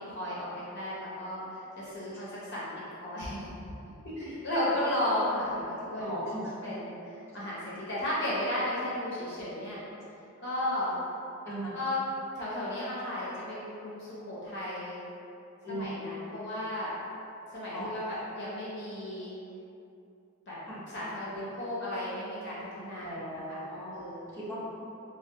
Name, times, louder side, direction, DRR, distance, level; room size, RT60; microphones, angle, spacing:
voice 1, 0.0-3.9 4.3-6.0 6.6-7.6 7.9-9.8 10.4-11.0 11.7-12.0 12.4-15.0 15.7-16.9 17.5-19.4 20.5-20.6 20.9-23.6 23.9-24.2, left 1 dB, 55° left, -7 dB, 0.6 m, -34 dB
voice 2, 4.0-4.3 6.0-6.5 11.5-11.7 15.6-16.0 17.7-17.9 20.7-20.8 21.3-21.5 23.0-23.9 24.3-24.6, right 1 dB, 15° left, -11 dB, 0.9 m, -38 dB
4.8 x 2.1 x 2.7 m, 2.8 s
head